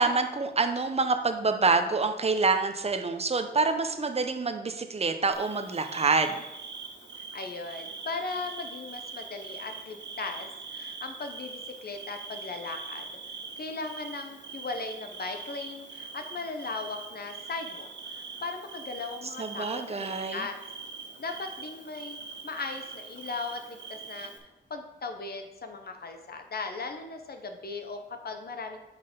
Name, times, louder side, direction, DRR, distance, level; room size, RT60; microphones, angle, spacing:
voice 1, 0.0-6.4 19.4-20.5, right 4 dB, 35° right, 7 dB, 0.6 m, -26 dB
Bird / Cricket, 5.3-24.4, right 4 dB, 75° right, 1.1 m, -43 dB
voice 2, 7.2-13.1 13.6-20.6 21.2-22.2 22.4-24.3 24.7-28.8, left 4 dB, 60° left, 5 dB, 0.8 m, -38 dB
6.0 x 5.7 x 5.2 m, 0.99 s
wide cardioid pair, 120°, 18 cm